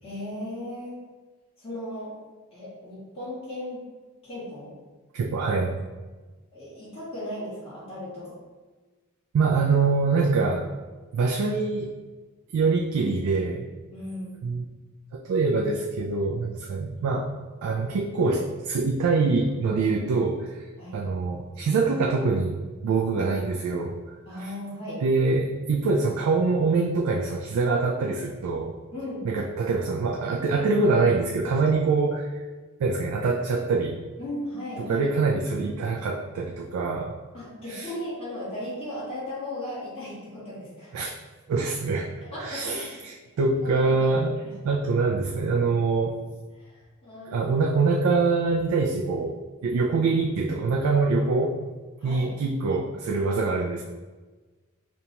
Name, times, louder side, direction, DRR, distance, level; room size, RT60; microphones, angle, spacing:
voice 1, 0.0-1.0 1.6-2.1 2.5-3.8 4.2-4.7 6.5-8.3 13.9-14.4 20.8-21.0 24.2-25.0 28.9-29.3 34.2-35.1 37.3-40.9 42.3-42.8 43.6-44.5 46.5-47.6 49.8-50.1 52.0-52.3, left 1 dB, 25° left, -9 dB, 1.5 m, -36 dB
voice 2, 5.1-5.8 9.3-10.7 11.1-11.9 12.5-13.7 14.4-14.6 15.1-17.3 17.6-20.7 20.9-24.0 24.4-24.5 25.0-28.7 29.2-32.3 32.8-34.0 34.8-37.1 37.7-37.9 40.9-41.2 41.5-42.1 42.4-44.4 44.6-46.2 47.3-51.6 52.0-53.8, right 4 dB, 80° right, 2 dB, 0.3 m, -24 dB
5.1 x 2.2 x 2.9 m, 1.3 s
head